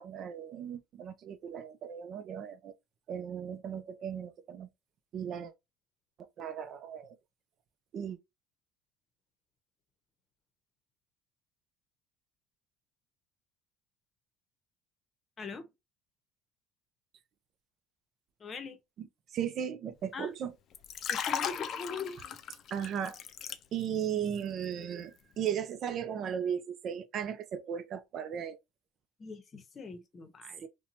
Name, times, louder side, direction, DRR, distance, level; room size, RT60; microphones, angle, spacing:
voice 1, 0.0-2.7 3.1-4.7 5.1-5.5 6.2-7.2 7.9-8.2 19.0-19.1 19.3-20.5 22.7-23.2 23.7-28.6 30.6-30.7, right 8 dB, 50° right, 0.5 m, -36 dB
voice 2, 15.4-15.7 18.4-18.8 20.1-20.3 21.1-22.2 29.2-30.7, left 4 dB, 35° left, 0.8 m, -41 dB
Liquid, 20.7-24.1 24.4-24.6, left 8 dB, 50° left, 0.4 m, -36 dB
2.8 x 2.2 x 2.6 m
supercardioid pair, 90°, 0 cm